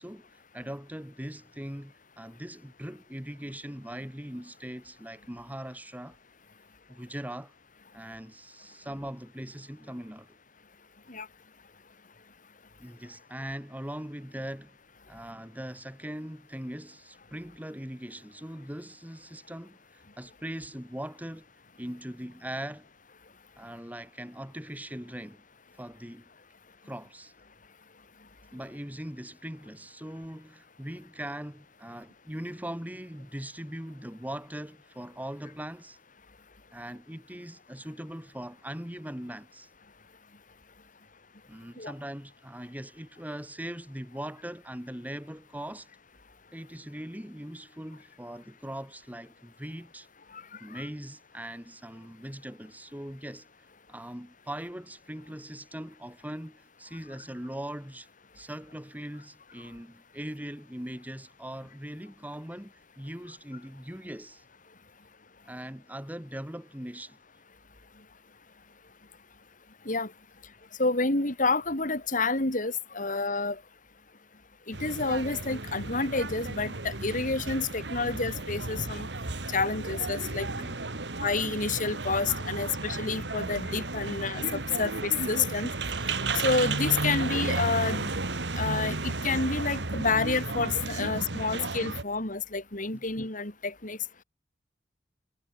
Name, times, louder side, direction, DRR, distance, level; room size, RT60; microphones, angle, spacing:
voice 1, 0.0-6.2 6.9-7.5 7.9-10.3 12.8-14.7 15.1-21.4 21.8-22.9 23.6-25.4 25.7-26.3 26.8-27.3 28.5-36.0 36.7-39.7 41.5-45.9 46.5-50.1 50.6-58.1 58.3-64.4 65.4-67.2 80.5-81.1 92.9-93.0, right 1 dB, 10° right, 2.1 m, -40 dB
voice 2, 70.8-73.6 74.7-79.1 79.5-80.5 81.2-85.7 86.3-88.1 88.6-94.0, left 3 dB, 45° left, 4.3 m, -29 dB
sound 1, 74.7-92.0, right 3 dB, 70° right, 2.2 m, -33 dB
head